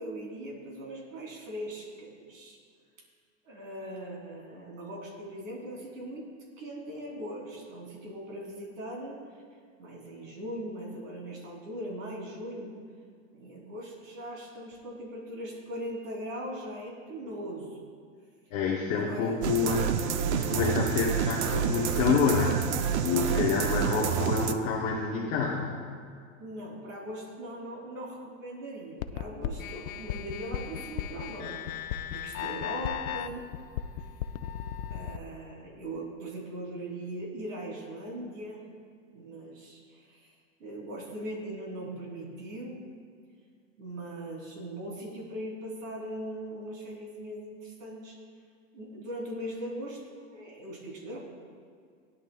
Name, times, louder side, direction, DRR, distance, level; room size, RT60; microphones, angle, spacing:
voice 1, 0.0-2.6 3.4-6.3 6.6-9.2 9.8-12.7 13.3-17.8 18.9-19.7 23.4-24.2 26.4-33.5 34.9-38.6 39.1-40.3 40.6-42.8 43.8-48.2 48.7-51.2, right 1 dB, 75° right, -2 dB, 3.2 m, -40 dB
voice 2, 18.5-19.9 20.3-22.6 23.0-25.7, left 5 dB, 25° left, -3 dB, 0.7 m, -27 dB
sound 1, 19.4-24.5, right 8 dB, 55° right, 0.6 m, -28 dB
sound 2, 29.0-35.2, left 10 dB, 85° left, 0.6 m, -36 dB
18.0 x 10.5 x 2.3 m, 2.2 s
supercardioid pair, 175°, 40 cm